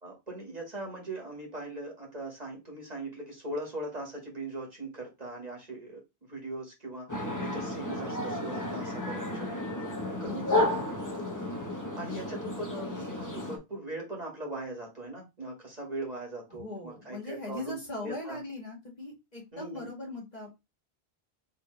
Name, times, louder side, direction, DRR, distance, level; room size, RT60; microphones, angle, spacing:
voice 1, 0.0-6.0 6.3-9.5 10.2-10.8 12.0-18.4 19.5-19.9, right 2 dB, 40° right, -1 dB, 2.1 m, -40 dB
sound 1, 7.1-13.6, left 1 dB, 20° left, 1.0 m, -32 dB
voice 2, 10.3-10.7 16.5-20.7, left 2 dB, 40° left, -2 dB, 2.0 m, -40 dB
4.0 x 3.5 x 3.1 m, 0.23 s
omnidirectional pair, 1.1 m